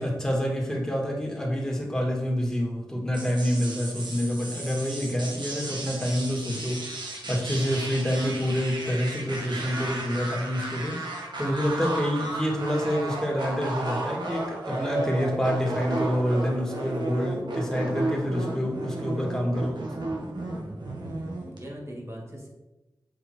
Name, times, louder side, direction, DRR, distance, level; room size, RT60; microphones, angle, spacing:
voice 1, 0.0-19.8, equal, 10° left, -1 dB, 2.1 m, -27 dB
sound 1, 3.1-21.6, right 2 dB, 85° right, 1.6 m, -34 dB
voice 2, 21.0-22.5, equal, 40° right, 0 dB, 2.4 m, -41 dB
7.7 x 6.2 x 4.5 m, 1.0 s
wide cardioid pair, 80°, 7 cm